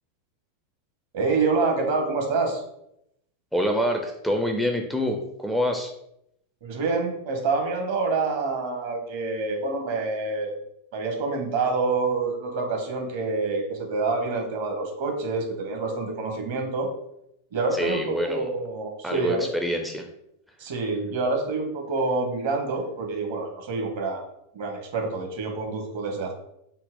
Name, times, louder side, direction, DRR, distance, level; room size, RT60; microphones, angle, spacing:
voice 1, 1.1-2.6 6.6-10.5 10.9-16.9 17.5-19.5 20.6-24.2 24.5-26.3, right 3 dB, 55° right, 3 dB, 0.9 m, -27 dB
voice 2, 3.5-5.9 17.7-18.5 19.0-20.1, equal, ahead, 3 dB, 0.4 m, -26 dB
4.0 x 2.0 x 3.7 m, 0.78 s
figure-of-eight pair, 90°, 0 cm